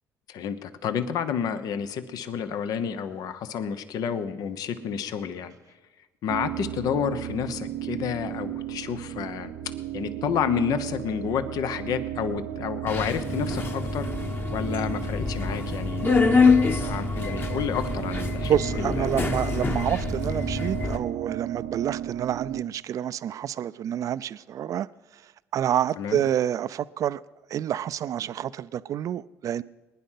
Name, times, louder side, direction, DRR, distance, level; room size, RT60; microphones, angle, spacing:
voice 1, 0.3-5.5 6.2-9.5 9.9-14.1 14.5-16.1 16.7-19.1 26.0-26.2, left 7 dB, 70° left, 1.0 m, -30 dB
sound 1, 6.3-22.6, right 12 dB, 75° right, 0.8 m, -34 dB
Subway metro underground, 12.9-21.0, left 4 dB, 30° left, 1.4 m, -25 dB
voice 2, 18.4-24.9 25.1-25.2 25.5-27.2 27.5-29.6, right 10 dB, 55° right, 0.4 m, -28 dB
20.5 x 10.0 x 5.8 m
supercardioid pair, 80°, 7 cm